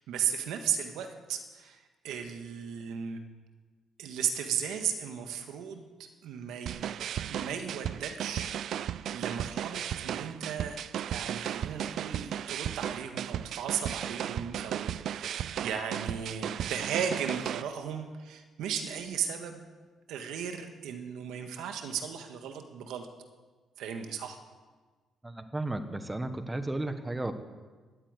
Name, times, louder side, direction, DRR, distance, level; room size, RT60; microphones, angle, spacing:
voice 1, 0.0-3.2 4.0-5.9 6.2-7.0 7.3-10.8 11.1-19.6 20.1-23.1 23.8-24.4, right 8 dB, 85° right, 6 dB, 1.6 m, -36 dB
sound 1, 6.7-17.6, right 10 dB, 70° right, 0.4 m, -35 dB
voice 2, 25.2-27.3, right 2 dB, 15° right, 9 dB, 1.4 m, -34 dB
13.0 x 8.5 x 9.7 m, 1.4 s
cardioid pair, 90°, 0 cm